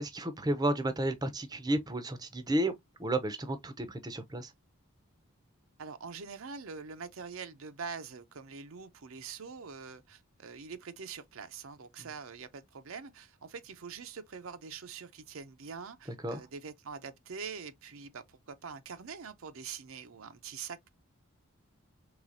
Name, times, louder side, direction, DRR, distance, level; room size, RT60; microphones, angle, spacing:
voice 1, 0.0-2.7 3.0-4.5 16.2-16.4, right 1 dB, 15° right, 0.6 m, -32 dB
voice 2, 5.8-20.9, right 5 dB, 65° right, 0.6 m, -44 dB
4.8 x 3.2 x 2.6 m
head